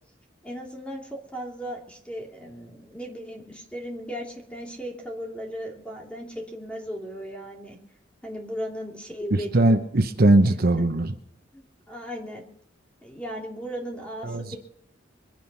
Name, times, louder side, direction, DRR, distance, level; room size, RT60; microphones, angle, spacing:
voice 1, 0.4-7.8 8.2-9.7 10.4-10.8 11.5-12.4 13.0-14.6, equal, 5° left, -1 dB, 2.9 m, -36 dB
voice 2, 9.3-11.1 14.2-14.6, right 2 dB, 55° right, 7 dB, 0.9 m, -20 dB
23.0 x 9.2 x 5.6 m, 0.78 s
head